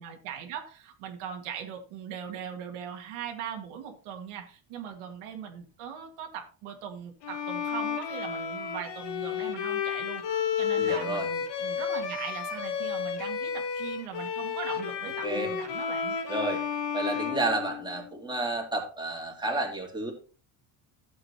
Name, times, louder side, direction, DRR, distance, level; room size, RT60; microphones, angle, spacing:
voice 1, 0.0-16.2, right 8 dB, 90° right, 2 dB, 2.2 m, -40 dB
Bowed string instrument, 7.2-18.2, left 7 dB, 55° left, 1.8 m, -32 dB
voice 2, 10.8-11.3 15.2-15.5 16.3-20.1, right 2 dB, 10° right, 0 dB, 2.6 m, -31 dB
13.0 x 7.8 x 2.9 m, 0.37 s
cardioid pair, 140°, 50 cm